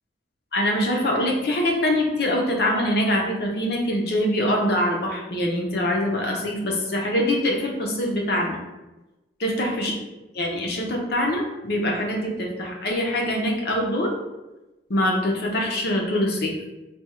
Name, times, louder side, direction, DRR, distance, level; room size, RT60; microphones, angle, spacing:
voice 1, 0.5-8.6 9.4-9.9 10.3-14.1 14.9-16.5, left 1 dB, 60° left, 0 dB, 0.7 m, -24 dB
3.4 x 2.3 x 4.3 m, 1.1 s
head